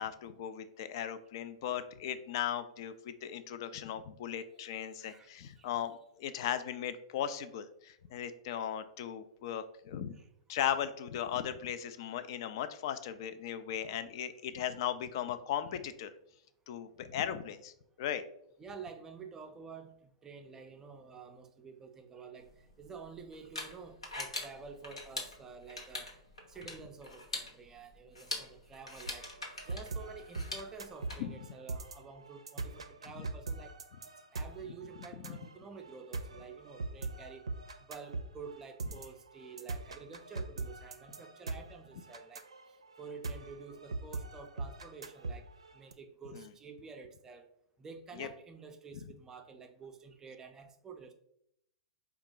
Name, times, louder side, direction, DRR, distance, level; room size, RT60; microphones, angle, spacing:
voice 1, 0.0-10.1 10.5-16.1 16.7-17.7 18.0-18.2 31.2-31.3 35.2-35.4 46.3-46.4 48.1-48.3, left 10 dB, 55° left, 0.4 m, -37 dB
voice 2, 5.0-5.7 8.5-8.6 10.2-10.3 18.6-26.2 26.5-29.3 29.6-33.7 34.3-37.5 37.7-45.5 45.7-47.5 47.8-51.1, right 5 dB, 20° right, 0.4 m, -50 dB
sound 1, 22.4-31.1, left 2 dB, 85° left, 0.9 m, -44 dB
sound 2, 29.1-45.9, right 3 dB, 80° right, 0.4 m, -42 dB
4.5 x 2.3 x 3.7 m
hypercardioid pair, 105°, 3 cm